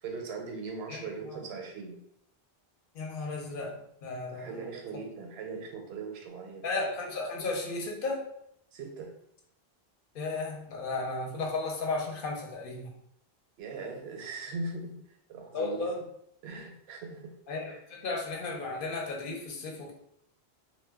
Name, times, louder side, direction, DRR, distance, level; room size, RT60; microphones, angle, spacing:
voice 1, 0.0-2.0 4.3-6.6 8.7-9.1 13.6-15.9 16.4-17.4, right 4 dB, 80° right, 2 dB, 0.8 m, -40 dB
voice 2, 0.9-1.4 2.9-4.7 6.6-8.2 10.1-12.9 15.5-16.0 17.5-19.9, left 3 dB, 60° left, 0 dB, 0.8 m, -34 dB
2.2 x 2.1 x 3.4 m, 0.73 s
omnidirectional pair, 1.1 m